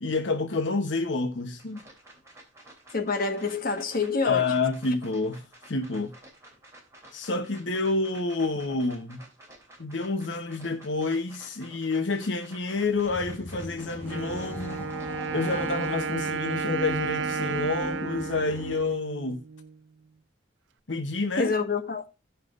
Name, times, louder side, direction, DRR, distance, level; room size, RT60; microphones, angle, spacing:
voice 1, 0.0-1.8 4.2-5.4 5.7-6.1 7.1-9.2 9.8-14.9 15.3-19.4 20.9-21.5, left 3 dB, 75° left, 1.0 m, -28 dB
sound 1, 1.6-16.2, right 1 dB, 15° right, 3.2 m, -52 dB
voice 2, 2.9-4.5 21.4-22.1, left 4 dB, 50° left, 1.4 m, -27 dB
sound 2, 12.7-19.0, left 1 dB, 10° left, 1.1 m, -39 dB
Wind instrument woodwind instrument, 14.0-19.8, right 5 dB, 80° right, 0.5 m, -33 dB
16.5 x 5.7 x 2.5 m
head